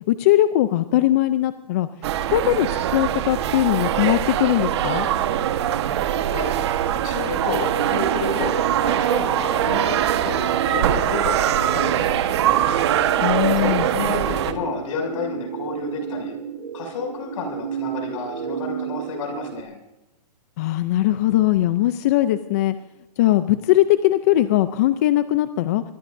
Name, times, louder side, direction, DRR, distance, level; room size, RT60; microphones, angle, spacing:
voice 1, 0.1-1.9 2.3-5.1 13.2-13.9 20.6-22.8 23.2-25.8, left 14 dB, 25° left, 12 dB, 0.4 m, -20 dB
sound 1, 2.0-14.5, right 11 dB, 40° right, 1.3 m, -22 dB
voice 2, 6.9-12.4 13.6-16.4 16.7-19.7, left 4 dB, 50° left, 3 dB, 6.6 m, -30 dB
sound 2, 7.7-19.6, right 8 dB, 85° right, 1.4 m, -32 dB
25.5 x 19.0 x 2.6 m, 0.93 s
hypercardioid pair, 165°, 21 cm